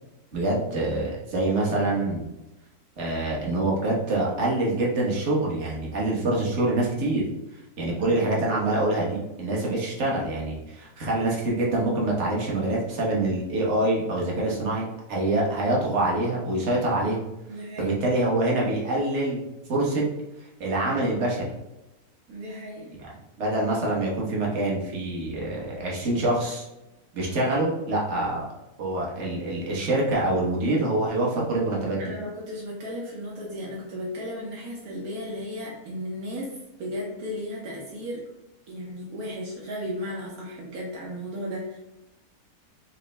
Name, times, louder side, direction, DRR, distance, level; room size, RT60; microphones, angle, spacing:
voice 1, 0.3-2.3 3.0-7.2 7.8-17.2 17.8-19.4 19.7-20.0 20.6-21.4 23.4-26.6 27.1-28.5 28.8-32.1, right 2 dB, 50° right, -3 dB, 1.3 m, -25 dB
voice 2, 17.5-17.9 22.3-22.9 32.0-38.2 38.7-41.8, equal, 75° right, -3 dB, 1.3 m, -35 dB
5.2 x 2.2 x 3.2 m, 0.95 s
omnidirectional pair, 1.6 m